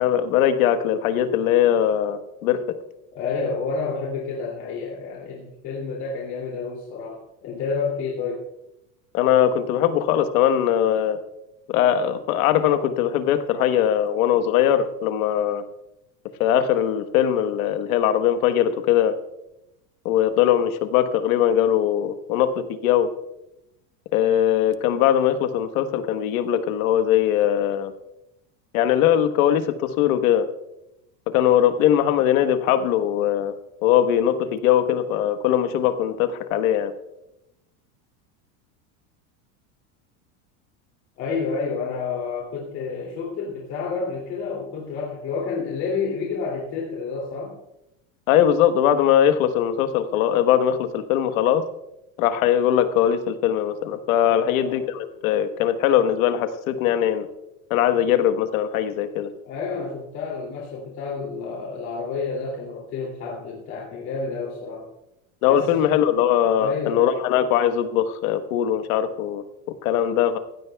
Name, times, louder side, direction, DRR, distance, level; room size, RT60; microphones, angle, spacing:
voice 1, 0.0-2.6 9.1-11.2 11.7-15.6 16.4-19.1 20.0-23.1 24.1-27.9 28.7-30.5 31.3-33.5 33.8-36.9 48.3-51.6 52.2-57.3 57.7-59.3 65.4-69.4 69.8-70.4, left 10 dB, 90° left, 9 dB, 1.3 m, -20 dB
voice 2, 3.1-8.5 41.2-47.5 54.2-54.8 59.5-64.9 65.5-65.8 66.5-67.2, left 4 dB, 40° left, -4 dB, 2.8 m, -30 dB
19.0 x 16.0 x 2.3 m, 0.88 s
cardioid pair, 175°, 41 cm